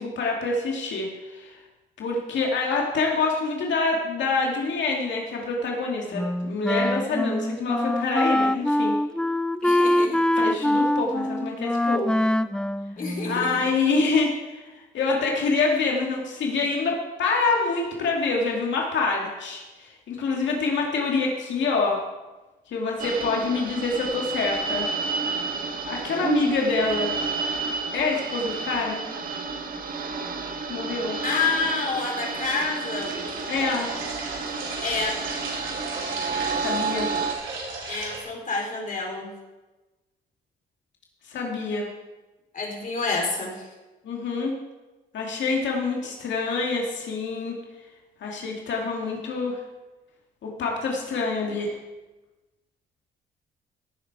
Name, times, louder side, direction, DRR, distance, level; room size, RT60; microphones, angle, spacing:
voice 1, 0.0-1.6 2.0-9.0 10.4-12.2 13.2-14.7 14.9-22.0 22.7-24.9 25.6-27.1 27.9-29.0 30.7-31.2 33.5-33.9 36.5-37.1 41.2-41.9 44.0-44.5 45.1-47.6 48.2-49.6 50.4-51.8, left 3 dB, 65° left, -1 dB, 2.2 m, -26 dB
Wind instrument woodwind instrument, 6.1-13.6, left 1 dB, 5° left, 0.4 m, -24 dB
voice 2, 9.6-10.2 13.0-13.6 31.2-33.2 34.8-35.2 37.9-39.3 42.5-43.7, left 4 dB, 45° left, 0 dB, 3.9 m, -28 dB
sound 1, 23.0-37.3, right 4 dB, 45° right, 1.5 m, -31 dB
sound 2, 33.0-38.2, right 3 dB, 70° right, 4.2 m, -35 dB
16.5 x 7.6 x 4.7 m, 1.1 s
cardioid pair, 90°, 20 cm